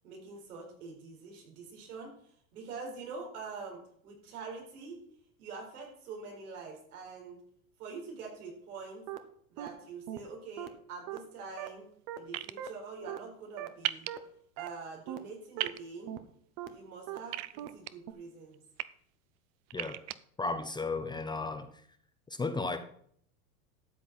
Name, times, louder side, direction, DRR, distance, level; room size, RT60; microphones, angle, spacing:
voice 1, 0.0-2.1 2.5-5.1 5.4-7.4 7.8-9.1 9.5-11.9 12.2-14.1 14.6-16.1 16.7-18.6, right 4 dB, 85° right, 1 dB, 4.7 m, -45 dB
sound 1, 9.1-9.2 9.6-9.7 10.1-10.2 10.6-10.7 11.1-11.2 11.6-11.7 12.1-12.2 12.6-12.7 13.1-13.2 13.6-13.7 14.1-14.2 14.6-14.7 15.1-15.2 15.6-15.7 16.1-16.2 16.6-16.7 17.1-17.2 17.6-17.7 18.1-18.2, right 13 dB, 55° right, 1.2 m, -39 dB
sound 2, 12.3-12.5 13.8-14.1 15.6-15.8 17.3-17.9 18.5-18.8 19.7-20.2, right 16 dB, 40° right, 0.5 m, -34 dB
voice 2, 19.7-20.0 20.4-21.7 22.3-22.8, left 3 dB, 10° left, 8 dB, 0.6 m, -34 dB
12.5 x 7.8 x 4.4 m, 0.63 s
supercardioid pair, 130°, 43 cm